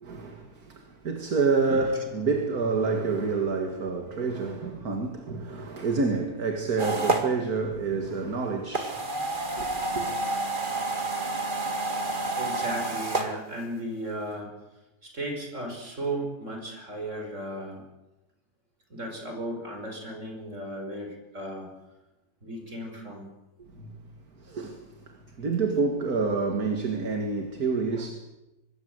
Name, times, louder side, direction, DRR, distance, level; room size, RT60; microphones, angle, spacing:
voice 1, 0.0-9.1 9.6-9.7 9.9-10.1 23.6-24.0 24.4-28.1, right 4 dB, 70° right, 2.6 m, -28 dB
sound 1, 6.8-7.3 8.7-13.3, right 2 dB, 30° right, 2.4 m, -29 dB
voice 2, 12.4-14.5 15.0-17.8 18.9-21.7 22.4-23.3, right 1 dB, 50° right, 5.9 m, -35 dB
25.0 x 20.5 x 8.1 m
omnidirectional pair, 1.7 m